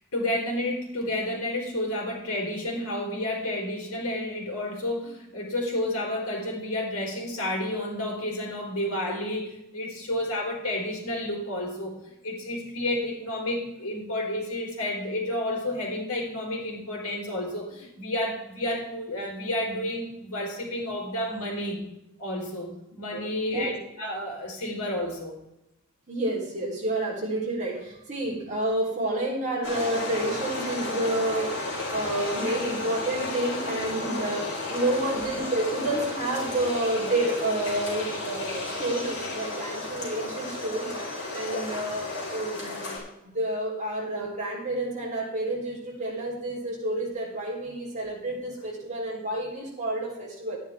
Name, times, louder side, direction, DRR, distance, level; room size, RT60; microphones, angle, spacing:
voice 1, 0.1-12.0 12.2-21.8 22.2-22.7 23.0-23.7 24.0-25.4 32.5-32.7, left 1 dB, 80° left, 0 dB, 3.8 m, -31 dB
voice 2, 23.1-23.7 26.1-31.5 31.9-41.0 41.3-50.6, right 1 dB, 35° right, -3 dB, 3.9 m, -29 dB
sound 1, 29.6-43.0, left 2 dB, 60° left, 4.7 m, -33 dB
12.5 x 10.0 x 3.6 m, 0.86 s
head